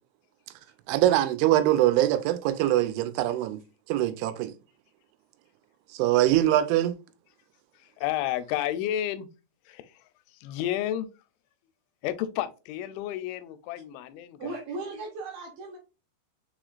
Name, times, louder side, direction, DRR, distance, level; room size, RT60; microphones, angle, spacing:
voice 1, 0.9-3.6 3.9-4.5 5.9-6.9, right 13 dB, 90° right, 3.0 m, -23 dB
voice 2, 8.0-9.3 9.7-10.0 10.4-11.1 12.0-14.5, left 12 dB, 90° left, 2.9 m, -31 dB
voice 3, 14.4-15.8, right 3 dB, 70° right, 2.3 m, -36 dB
6.6 x 3.0 x 2.4 m
omnidirectional pair, 5.3 m